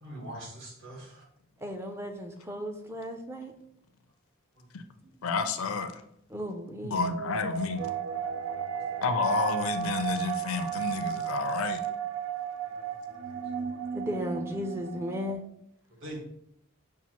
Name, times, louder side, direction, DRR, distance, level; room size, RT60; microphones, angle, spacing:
voice 1, 0.0-1.2 5.2-5.3 13.2-13.4 13.7-13.8 16.0-16.2, right 1 dB, 60° right, -4 dB, 1.5 m, -43 dB
voice 2, 1.6-3.5 6.3-7.1 13.9-15.4, equal, 10° right, 3 dB, 0.4 m, -35 dB
voice 3, 5.2-5.9 6.8-7.8 9.0-11.8, left 5 dB, 70° left, 9 dB, 0.4 m, -30 dB
sound 1, 6.9-15.3, right 8 dB, 90° right, 0.4 m, -34 dB
7.0 x 2.4 x 2.9 m, 0.73 s
head